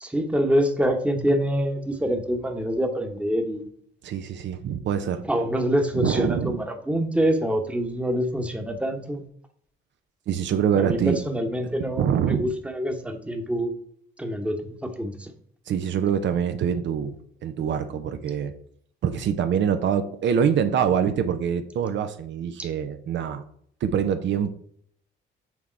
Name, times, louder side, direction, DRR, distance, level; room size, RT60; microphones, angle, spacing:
voice 1, 0.0-3.6 5.3-9.2 10.8-13.7 14.2-15.3, equal, 5° right, 5 dB, 1.0 m, -25 dB
voice 2, 4.0-5.2 5.9-6.6 10.3-11.2 12.0-12.5 15.7-17.2 17.4-18.5 19.0-23.4 23.8-24.5, right 8 dB, 70° right, 9 dB, 0.6 m, -24 dB
6.2 x 3.6 x 4.4 m, 0.64 s
cardioid pair, 90°, 20 cm